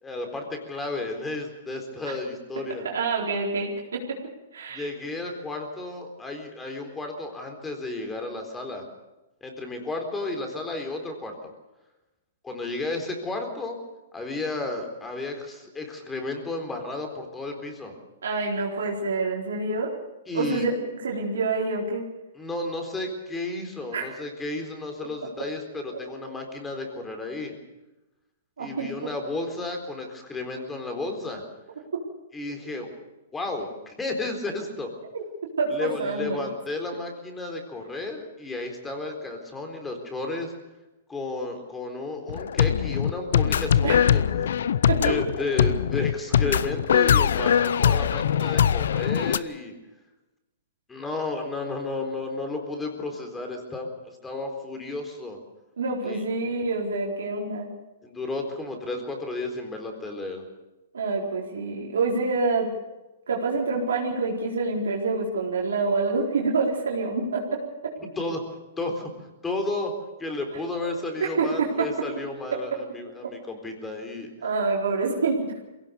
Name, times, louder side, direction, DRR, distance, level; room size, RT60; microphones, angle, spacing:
voice 1, 0.0-2.9 4.7-8.8 9.4-11.4 12.4-13.8 14.1-17.9 20.3-20.7 22.3-27.5 28.6-31.4 32.3-32.9 33.3-34.9 35.7-40.5 41.1-49.7 50.9-55.4 56.0-56.2 58.0-60.4 68.2-68.4 68.8-69.1 69.4-69.9 70.2-74.3, left 2 dB, 10° left, 4 dB, 4.1 m, -33 dB
voice 2, 2.8-4.2 4.5-4.9 18.2-19.9 20.3-20.7 21.0-22.1 23.9-24.0 28.6-29.1 31.9-32.0 35.1-35.2 35.6-36.5 43.8-44.0 44.9-45.0 55.8-57.7 60.9-62.7 63.3-68.0 70.8-70.9 71.2-71.9 72.5-72.6 73.2-73.3 74.4-75.6, right 3 dB, 85° right, -2 dB, 4.2 m, -27 dB
sound 1, 42.3-49.4, left 8 dB, 75° left, 0.7 m, -22 dB
22.0 x 17.0 x 7.0 m, 1.0 s
hypercardioid pair, 130°, 0 cm